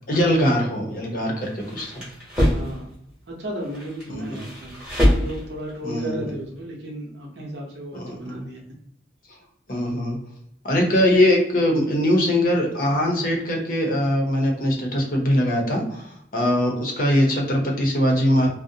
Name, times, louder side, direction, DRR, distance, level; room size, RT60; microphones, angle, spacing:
voice 1, 0.1-2.0 4.1-4.4 5.8-6.3 7.9-8.4 9.7-10.2 10.6-18.5, left 1 dB, 50° left, 1 dB, 0.6 m, -22 dB
sound 1, 1.4-2.8 3.6-5.7, equal, 5° right, 0.9 m, -24 dB
voice 2, 2.5-3.0 3.3-4.8 5.2-8.6, right 1 dB, 70° right, -2 dB, 0.7 m, -34 dB
2.5 x 2.0 x 2.6 m, 0.74 s
head